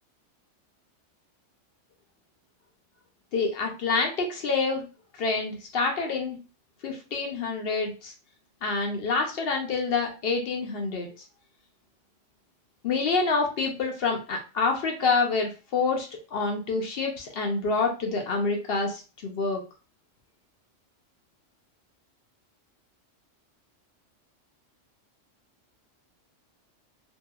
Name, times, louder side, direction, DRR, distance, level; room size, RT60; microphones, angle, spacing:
voice 1, 3.3-4.9 5.2-6.4 6.8-8.1 8.6-11.1 12.8-19.6, left 4 dB, 60° left, 2 dB, 0.8 m, -27 dB
2.7 x 2.3 x 2.3 m, 0.33 s
omnidirectional pair, 1.3 m